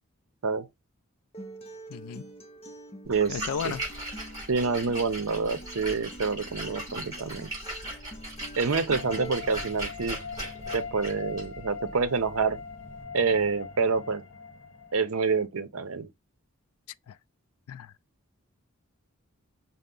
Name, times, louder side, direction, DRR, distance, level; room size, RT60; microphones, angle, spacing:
Acoustic guitar, 1.3-9.3, right 1 dB, 25° left, 0.6 m, -46 dB
voice 1, 1.9-2.3 3.3-3.9 17.1-17.2 17.7-17.9, left 7 dB, 85° left, 0.3 m, -34 dB
Splash splatter, 3.1-13.0, right 1 dB, 15° right, 3.1 m, -39 dB
voice 2, 3.1-3.4 3.6-3.7 4.5-7.5 8.6-10.2 10.7-12.6 13.1-14.2 14.9-16.1, right 4 dB, 70° right, 0.6 m, -27 dB
sound 1, 8.9-15.4, left 5 dB, 60° left, 0.9 m, -42 dB
5.5 x 2.1 x 3.7 m
head